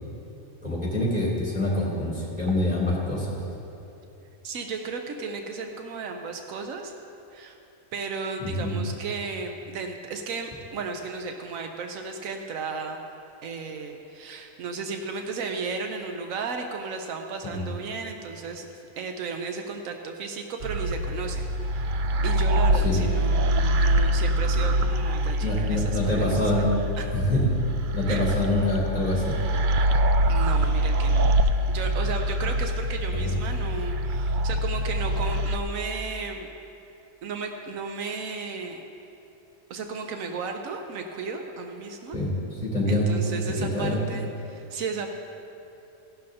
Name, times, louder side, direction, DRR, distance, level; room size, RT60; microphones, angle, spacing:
voice 1, 0.6-3.4 8.4-8.8 17.4-17.6 22.8-23.0 25.4-26.7 27.1-27.5 27.9-29.4 33.2-33.4 42.1-42.3 42.6-43.2 43.6-44.0, left 1 dB, 5° right, -6 dB, 3.0 m, -25 dB
voice 2, 4.4-6.9 7.3-7.6 7.9-13.0 13.4-18.7 19.0-21.9 22.2-26.5 27.0-27.2 28.1-28.3 30.3-31.3 31.7-36.5 37.2-38.8 39.7-42.2 42.9-45.2, right 4 dB, 90° right, 4 dB, 1.1 m, -34 dB
sound 1, 20.6-35.6, right 1 dB, 70° right, 0.4 m, -24 dB
16.0 x 11.5 x 2.8 m, 2.8 s
omnidirectional pair, 1.4 m